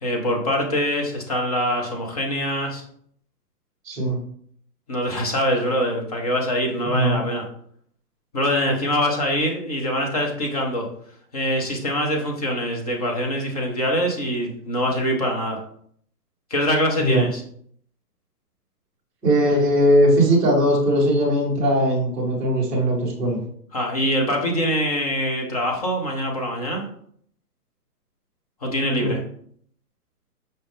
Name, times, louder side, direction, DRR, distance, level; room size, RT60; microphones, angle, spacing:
voice 1, 0.0-2.8 4.9-7.4 8.3-10.9 11.3-15.6 16.5-17.4 23.7-26.8 28.6-29.2, equal, 25° left, 1 dB, 0.5 m, -24 dB
voice 2, 3.8-4.2 6.8-7.2 17.0-17.2 19.2-23.4 29.0-29.1, equal, 5° right, -10 dB, 0.8 m, -19 dB
5.3 x 2.4 x 3.4 m, 0.62 s
hypercardioid pair, 145°, 47 cm